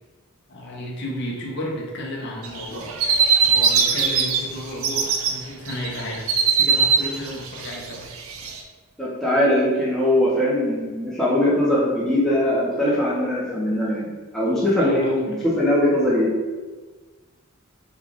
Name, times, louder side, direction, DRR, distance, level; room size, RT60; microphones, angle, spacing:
voice 1, 0.5-3.0 3.4-8.1 14.4-15.5, left 1 dB, 50° left, -3 dB, 0.8 m, -33 dB
sound 1, 2.4-4.4 4.7-5.3 5.7-8.6, right 6 dB, 75° right, 0.4 m, -20 dB
voice 2, 9.0-16.3, left 1 dB, ahead, -8 dB, 0.8 m, -21 dB
3.6 x 2.4 x 3.5 m, 1.4 s
head